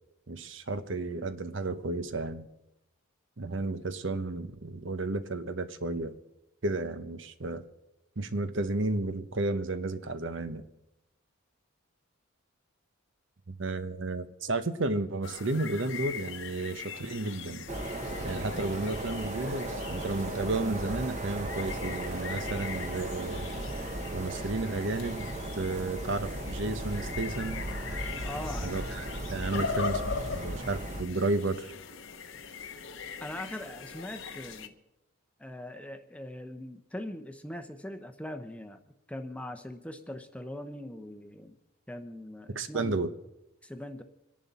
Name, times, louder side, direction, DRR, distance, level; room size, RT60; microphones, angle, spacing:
voice 1, 0.3-2.5 3.4-6.2 6.6-7.6 8.2-10.6 13.5-17.7 18.2-23.5 24.1-27.6 28.6-30.0 30.3-31.7 42.5-43.1, right 2 dB, 60° right, 0.9 m, -32 dB
sound 1, 15.2-34.7, left 5 dB, 65° left, 1.0 m, -41 dB
sound 2, 17.7-31.0, right 1 dB, 35° right, 1.1 m, -36 dB
voice 2, 28.2-28.7 29.5-29.7 33.2-34.7 35.4-38.8 39.1-41.6 41.9-43.0 43.6-44.0, left 1 dB, 5° left, 0.8 m, -41 dB
26.5 x 11.0 x 4.2 m
head